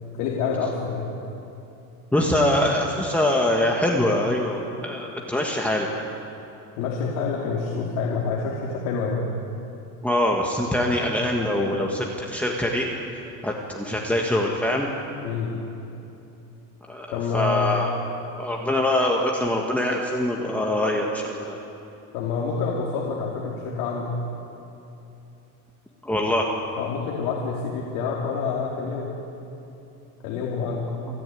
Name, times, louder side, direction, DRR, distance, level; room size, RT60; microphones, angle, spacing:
voice 1, 0.1-1.1 6.8-9.3 15.2-15.6 17.1-17.7 22.1-24.2 26.8-29.1 30.2-30.9, left 5 dB, 90° left, -4 dB, 3.2 m, -27 dB
voice 2, 2.1-5.9 10.0-12.9 13.4-14.9 16.9-18.0 18.4-21.6 26.0-26.5, left 1 dB, 5° left, -1 dB, 1.5 m, -23 dB
29.0 x 10.5 x 9.3 m, 2.8 s
cardioid pair, 140°, 39 cm